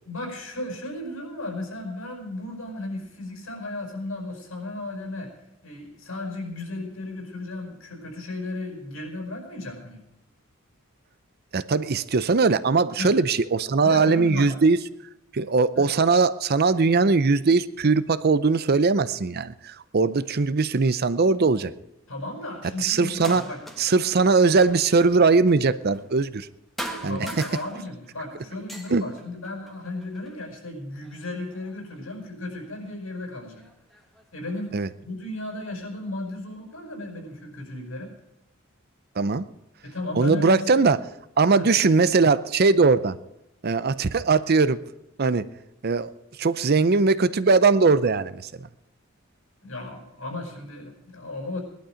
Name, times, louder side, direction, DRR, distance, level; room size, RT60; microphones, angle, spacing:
voice 1, 0.0-5.3 5.6-10.0 12.9-13.1 13.8-14.5 15.7-15.9 22.1-23.6 27.0-33.7 34.3-38.1 39.8-40.7 41.5-41.7 49.6-51.6, left 2 dB, 75° left, 2 dB, 5.2 m, -35 dB
voice 2, 11.5-14.8 15.3-21.7 22.8-23.4 23.8-26.5 27.0-27.3 28.9-29.0 34.7-34.9 39.2-39.5 40.2-41.0 41.4-43.2 43.6-44.8 45.2-45.5 45.8-46.1 46.4-48.5, right 4 dB, 50° right, 14 dB, 0.6 m, -20 dB
sound 1, 23.1-24.0 24.3-26.5 26.8-28.2 28.5-30.4 31.0-31.9 32.9-33.0 33.6-34.6, right 1 dB, ahead, 1.4 m, -41 dB
18.5 x 11.5 x 5.1 m, 0.88 s
head